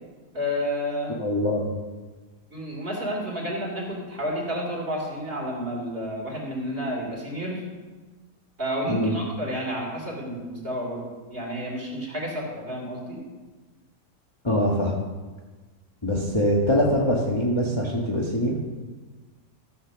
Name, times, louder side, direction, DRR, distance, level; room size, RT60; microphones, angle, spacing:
voice 1, 0.3-1.1 2.5-7.6 8.6-13.2, equal, 30° right, -2 dB, 3.6 m, -30 dB
voice 2, 1.2-1.7 8.9-9.2 14.4-14.9 16.0-18.6, equal, 15° left, -3 dB, 1.3 m, -23 dB
14.0 x 7.2 x 6.9 m, 1.3 s
omnidirectional pair, 1.9 m